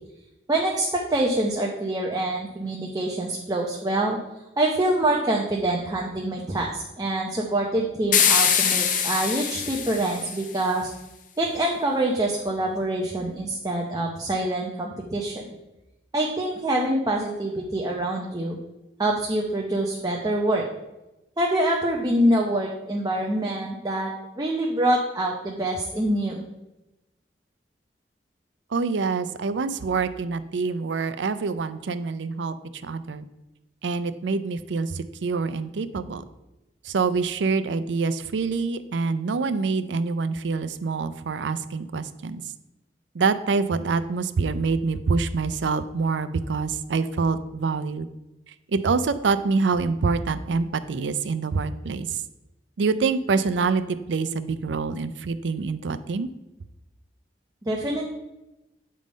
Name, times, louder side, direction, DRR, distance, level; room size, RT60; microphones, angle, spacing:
voice 1, 0.5-4.2 4.6-10.9 11.4-15.4 16.1-18.6 19.0-20.6 21.4-24.1 24.4-26.4 57.6-58.1, right 1 dB, 20° right, -1 dB, 0.7 m, -25 dB
sound 1, 8.1-10.5, left 8 dB, 50° left, 0.6 m, -23 dB
voice 2, 28.7-32.5 32.8-33.2 33.8-36.2 36.8-42.4 43.1-48.1 48.7-52.2 52.8-56.3, right 4 dB, 90° right, 12 dB, 0.5 m, -26 dB
8.5 x 3.7 x 5.1 m, 0.96 s
head